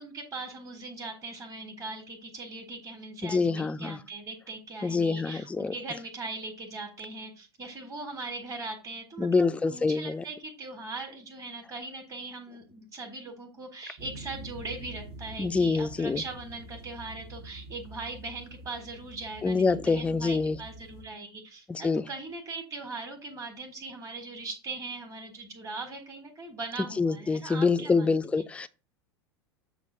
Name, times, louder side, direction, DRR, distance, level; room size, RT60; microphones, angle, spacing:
voice 1, 0.0-28.1, right 3 dB, 20° right, 1.4 m, -40 dB
voice 2, 3.2-4.0 4.8-5.7 9.2-10.2 15.4-16.2 19.4-20.6 21.7-22.0 27.0-28.7, left 4 dB, 10° left, 0.3 m, -26 dB
sound 1, 14.0-21.0, right 2 dB, 45° right, 0.9 m, -46 dB
7.2 x 2.4 x 5.3 m
figure-of-eight pair, 85°, 14 cm